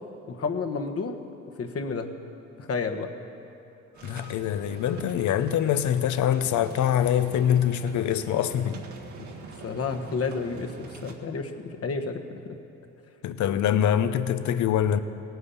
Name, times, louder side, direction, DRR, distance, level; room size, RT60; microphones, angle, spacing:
voice 1, 0.3-1.2 1.6-2.1 2.6-3.1 9.1-9.3 9.6-12.6, left 4 dB, 50° left, 5 dB, 1.3 m, -31 dB
sound 1, 3.9-11.1, right 3 dB, 75° right, 1.7 m, -43 dB
voice 2, 4.0-8.8 13.2-15.0, left 10 dB, 70° left, 12 dB, 0.7 m, -24 dB
17.5 x 9.5 x 7.0 m, 2.7 s
cardioid pair, 90°, 30 cm